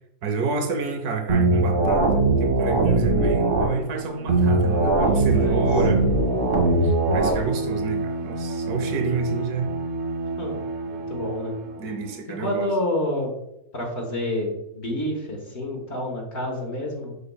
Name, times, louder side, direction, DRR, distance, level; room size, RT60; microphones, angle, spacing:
voice 1, 0.2-2.1 2.4-6.0 6.8-9.7 11.8-12.7, right 5 dB, 85° right, 5 dB, 1.4 m, -28 dB
sound 1, 1.3-3.7 4.3-7.3, right 2 dB, 40° right, 1.5 m, -20 dB
Bowed string instrument, 3.8-12.3, right 3 dB, 65° right, 1.0 m, -32 dB
voice 2, 4.7-5.6 10.4-10.6 10.8-11.5 12.4-13.3 13.7-17.1, left 1 dB, 45° left, 0 dB, 1.4 m, -29 dB
6.9 x 6.7 x 2.3 m, 0.86 s
omnidirectional pair, 1.6 m